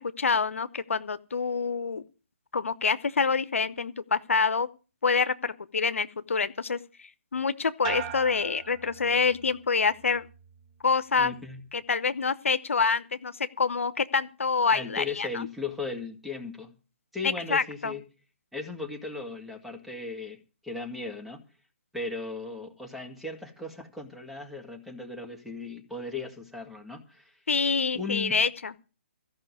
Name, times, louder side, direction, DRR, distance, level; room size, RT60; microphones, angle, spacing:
voice 1, 0.0-2.0 2.5-4.7 5.0-10.3 10.8-11.3 11.7-15.5 17.5-17.9 27.5-28.7, left 5 dB, 80° left, 14 dB, 0.8 m, -27 dB
sound 1, 7.8-9.6 10.0-10.6, right 9 dB, 30° right, 1.2 m, -39 dB
voice 2, 11.2-11.6 14.7-16.7 17.1-18.0 18.5-20.4 20.6-21.4 21.9-27.4 27.9-28.4, left 3 dB, ahead, 1 dB, 1.8 m, -37 dB
14.5 x 5.7 x 9.6 m, 0.35 s
hypercardioid pair, 145°, 7 cm